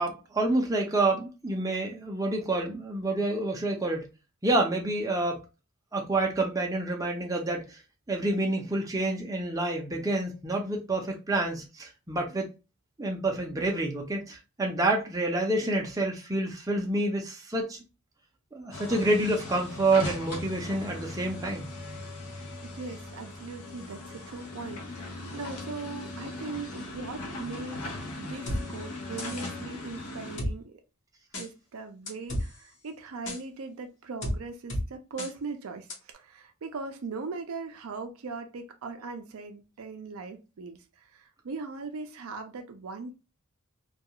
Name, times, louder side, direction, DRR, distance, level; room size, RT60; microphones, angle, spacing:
voice 1, 0.0-4.1 4.4-5.4 5.9-7.8 8.1-12.5 13.0-17.8 18.5-21.7, right 2 dB, 15° right, 0.5 m, -28 dB
sound 1, 18.7-30.4, left 2 dB, 70° left, 0.6 m, -39 dB
voice 2, 22.6-30.8 31.4-43.1, right 4 dB, 65° right, 0.4 m, -40 dB
sound 2, 28.5-28.6 29.2-29.5 30.4-30.5 31.3-31.5 32.1-32.5 33.3-33.4 34.2-34.4 34.7-34.8 35.2-35.3 35.9-36.0, equal, 55° left, 1.0 m, -31 dB
2.3 x 2.3 x 2.7 m
head